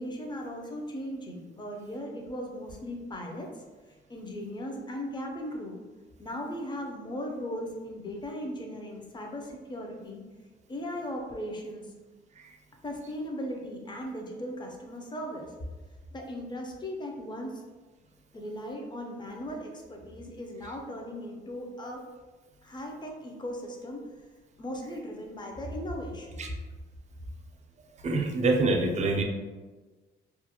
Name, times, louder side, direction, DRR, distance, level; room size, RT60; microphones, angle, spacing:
voice 1, 0.0-3.6 4.1-5.8 6.2-10.2 10.7-11.9 12.8-15.5 16.1-17.6 18.3-22.0 22.6-24.0 24.6-26.5, equal, 20° left, 1 dB, 0.5 m, -37 dB
voice 2, 28.0-29.2, right 2 dB, 35° right, 2 dB, 0.4 m, -26 dB
2.4 x 2.1 x 2.7 m, 1.3 s
cardioid pair, 90°, 20 cm